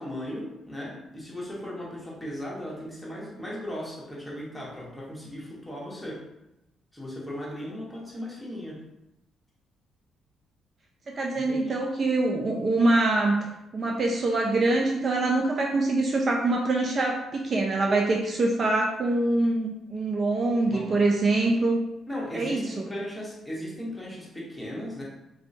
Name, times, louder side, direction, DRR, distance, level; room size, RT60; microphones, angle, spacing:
voice 1, 0.0-6.2 6.9-8.8 11.3-11.7 20.7-21.1 22.1-25.0, equal, 5° left, -5 dB, 1.1 m, -37 dB
voice 2, 11.1-13.5 13.7-21.8 22.3-22.7, right 2 dB, 45° right, 0 dB, 0.4 m, -24 dB
3.2 x 2.7 x 2.7 m, 0.89 s
cardioid pair, 90°, 0 cm